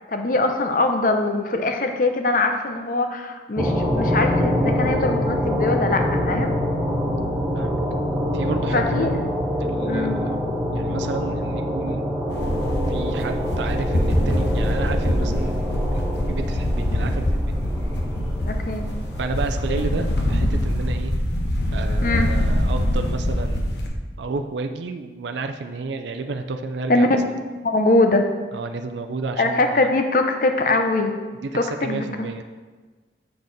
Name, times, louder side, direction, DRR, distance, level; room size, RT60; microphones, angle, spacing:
voice 1, 0.1-6.5 8.7-9.2 9.8-10.2 18.4-18.9 19.7-19.9 22.0-22.3 26.9-27.1 27.6-28.3 29.4-31.1 31.5-32.3, left 2 dB, 50° left, 5 dB, 0.7 m, -22 dB
sound 1, 3.6-21.0, equal, 5° right, 0.9 m, -26 dB
voice 2, 8.3-9.2 9.6-10.4 10.7-12.0 12.9-15.6 15.9-17.6 19.2-21.1 21.7-27.2 28.5-29.8 31.4-32.4, right 3 dB, 80° right, 6 dB, 0.4 m, -31 dB
sound 2, 12.3-23.9, left 1 dB, 75° left, 0.9 m, -23 dB
6.7 x 6.3 x 4.0 m, 1.4 s
head